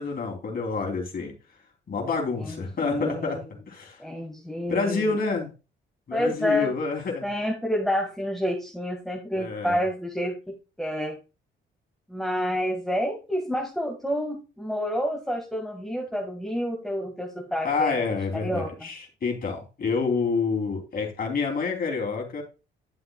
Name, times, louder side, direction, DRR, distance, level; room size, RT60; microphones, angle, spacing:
voice 1, 0.0-1.3 1.9-3.4 3.7-4.0 4.7-5.5 6.1-7.3 9.3-9.8 17.6-22.4, left 4 dB, 50° left, 2 dB, 3.3 m, -28 dB
voice 2, 2.4-3.4 4.0-5.1 6.1-6.7 7.2-11.1 12.1-18.9, equal, ahead, 0 dB, 2.0 m, -29 dB
10.5 x 7.9 x 2.4 m, 0.31 s
cardioid pair, 90°, 20 cm